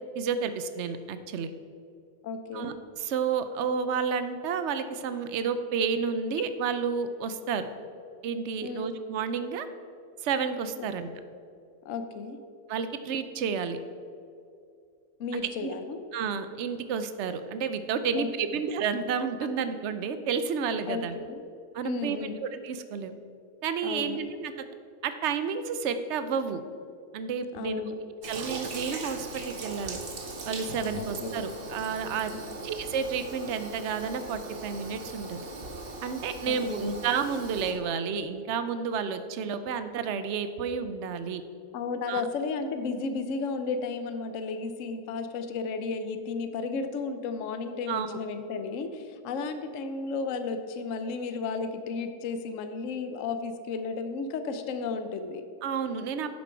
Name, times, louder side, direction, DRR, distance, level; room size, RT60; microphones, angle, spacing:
voice 1, 0.1-1.5 2.5-7.7 8.2-9.7 10.2-11.1 12.7-13.8 15.3-15.7 16.1-21.1 21.7-23.1 23.6-24.5 25.0-26.6 27.1-27.8 28.3-30.0 30.5-32.3 32.6-35.4 36.0-41.4 42.1-42.2 47.9-48.1 55.6-56.4, right 6 dB, 60° right, 10 dB, 0.8 m, -31 dB
voice 2, 2.2-2.8 8.6-9.0 10.8-10.9 11.8-12.4 15.2-16.0 18.2-18.3 20.9-21.4 21.8-22.4 23.8-24.2 27.5-28.0 30.9-31.4 32.3-32.4 36.4-36.9 41.7-55.4, left 4 dB, 60° left, 8 dB, 1.0 m, -33 dB
Toilet flush, 28.2-37.7, right 2 dB, 40° right, 1.1 m, -39 dB
10.5 x 7.5 x 4.5 m, 2.4 s
omnidirectional pair, 1.7 m